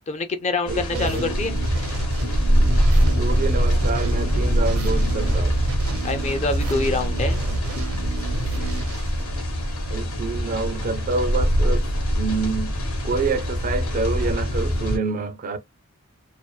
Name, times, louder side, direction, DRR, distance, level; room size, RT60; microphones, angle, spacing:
voice 1, 0.1-1.6 6.0-7.4, left 3 dB, 30° left, 0.4 m, -25 dB
sound 1, 0.7-15.0, equal, 80° left, 1.0 m, -23 dB
voice 2, 0.7-1.4 3.2-5.7 9.9-12.8 13.0-15.6, right 4 dB, 40° right, 0.4 m, -27 dB
sound 2, 0.9-9.8, right 2 dB, 80° right, 0.6 m, -29 dB
2.5 x 2.2 x 2.3 m
head